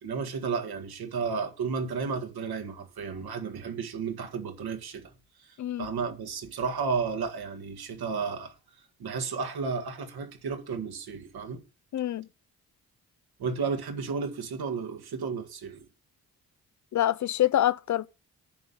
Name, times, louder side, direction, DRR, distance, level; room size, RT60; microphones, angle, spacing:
voice 1, 0.0-5.1 5.4-8.6 9.0-11.6 13.4-15.9, right 5 dB, 75° right, 1.8 m, -33 dB
voice 2, 11.9-12.3 16.9-18.1, left 12 dB, 50° left, 0.5 m, -26 dB
10.5 x 3.8 x 6.9 m
supercardioid pair, 50°, 38 cm